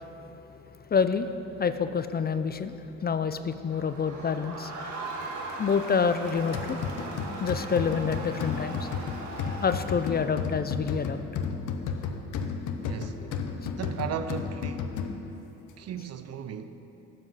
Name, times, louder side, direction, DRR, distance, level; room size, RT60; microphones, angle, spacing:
voice 1, 0.9-1.3 1.6-4.7 5.6-6.8 7.4-8.9 9.6-11.2 13.2-13.3, left 6 dB, 30° left, 0.5 m, -27 dB
Crowd, 3.7-10.5, right 2 dB, 80° right, 1.8 m, -39 dB
sound 1, 6.5-15.4, left 6 dB, 85° left, 0.9 m, -33 dB
voice 2, 12.8-13.2 13.7-14.9 15.8-16.8, right 8 dB, 55° right, 0.7 m, -36 dB
14.0 x 7.8 x 5.7 m
cardioid pair, 90°, 30 cm